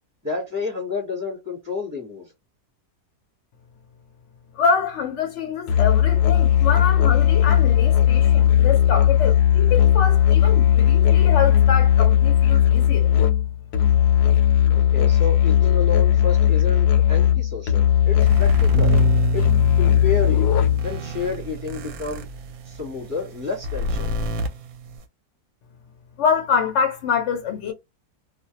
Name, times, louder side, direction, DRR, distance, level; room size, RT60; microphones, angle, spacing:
voice 1, 0.2-2.3 14.7-18.9 19.3-19.4 19.8-20.5 20.8-22.3 22.7-24.1, left 5 dB, 15° right, 0.9 m, -30 dB
voice 2, 4.6-13.1 26.2-27.7, left 6 dB, 65° left, 0.7 m, -25 dB
Musical instrument, 5.7-21.0, left 10 dB, 85° left, 1.1 m, -17 dB
sound 1, 18.2-25.0, equal, 70° right, 0.9 m, -31 dB
Bass guitar, 18.7-25.0, right 11 dB, 40° right, 0.8 m, -31 dB
2.5 x 2.1 x 2.8 m
omnidirectional pair, 1.6 m